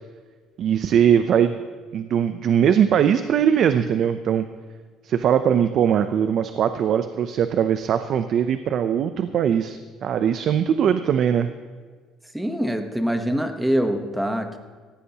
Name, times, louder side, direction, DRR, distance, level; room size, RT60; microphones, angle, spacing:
voice 1, 0.6-1.6 1.9-4.5 5.0-11.5, right 8 dB, 45° right, 9 dB, 0.5 m, -20 dB
voice 2, 12.3-14.6, equal, 5° right, 6 dB, 1.0 m, -24 dB
17.5 x 15.5 x 2.9 m, 1.5 s
cardioid pair, 155°, 0 cm